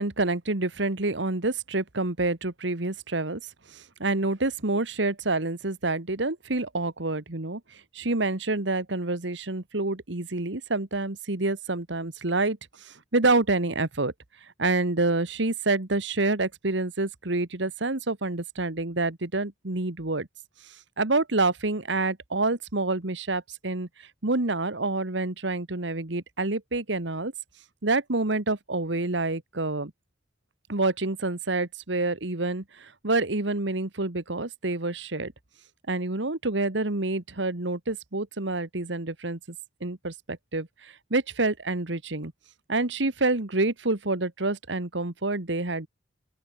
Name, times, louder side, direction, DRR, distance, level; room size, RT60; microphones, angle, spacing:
voice 1, 0.0-3.4 3.7-7.6 7.9-12.6 12.8-14.1 14.6-20.3 21.0-23.9 24.2-27.3 27.8-29.9 30.7-35.3 35.9-39.4 39.8-42.3 42.7-45.9, right 2 dB, 70° right, 1.8 m, -27 dB
open air
head